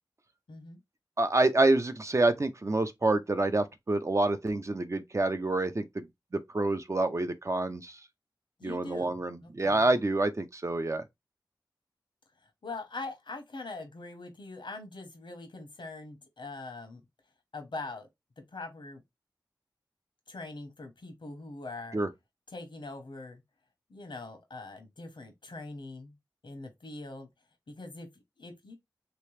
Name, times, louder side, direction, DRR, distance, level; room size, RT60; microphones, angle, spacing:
voice 1, 0.5-0.8 8.6-9.9 12.6-17.0 17.5-18.1 18.5-19.0 20.3-22.0 22.5-23.4 23.9-26.1 26.4-27.3 27.7-28.1 28.4-28.8, left 3 dB, 85° left, 1.0 m, -42 dB
voice 2, 1.2-6.1 6.3-8.0 8.6-11.0 21.9-22.1, right 2 dB, 40° right, 0.5 m, -27 dB
3.2 x 3.0 x 3.2 m
wide cardioid pair, 65°, 8 cm